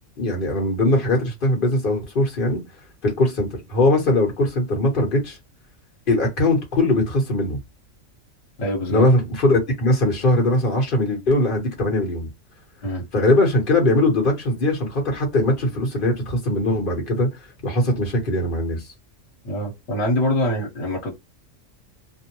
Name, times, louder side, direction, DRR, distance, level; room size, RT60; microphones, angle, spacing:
voice 1, 0.2-2.6 3.0-5.4 6.1-7.6 8.9-12.3 13.1-17.3 17.6-18.8, left 1 dB, 45° left, 1.2 m, -20 dB
voice 2, 8.6-9.0 12.8-13.0 19.4-21.2, left 1 dB, 60° left, 1.3 m, -24 dB
2.6 x 2.1 x 2.8 m
omnidirectional pair, 1.3 m